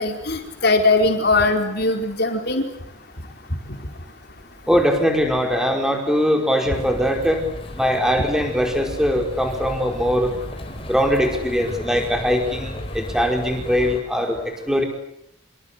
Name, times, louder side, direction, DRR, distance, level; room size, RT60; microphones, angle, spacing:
voice 1, 0.0-2.6, left 3 dB, 50° left, 3 dB, 4.6 m, -20 dB
voice 2, 4.7-7.4 7.7-10.3 10.8-14.8, equal, 5° right, 3 dB, 4.9 m, -21 dB
sound 1, 6.7-14.0, left 1 dB, 25° left, 4.3 m, -34 dB
26.5 x 26.5 x 8.2 m, 0.75 s
head